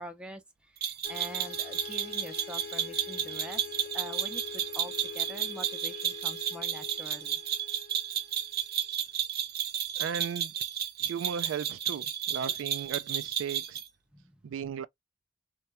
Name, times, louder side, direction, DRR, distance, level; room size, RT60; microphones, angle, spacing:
voice 1, 0.0-3.7 3.9-7.4 14.1-14.4, right 1 dB, 5° right, 0.5 m, -45 dB
sound 1, 0.8-13.9, right 10 dB, 55° right, 0.7 m, -32 dB
sound 2, 1.0-8.8, left 7 dB, 50° left, 0.5 m, -44 dB
voice 2, 10.0-10.5 11.0-13.8 14.4-14.9, right 7 dB, 90° right, 0.3 m, -36 dB
3.3 x 2.2 x 2.8 m
head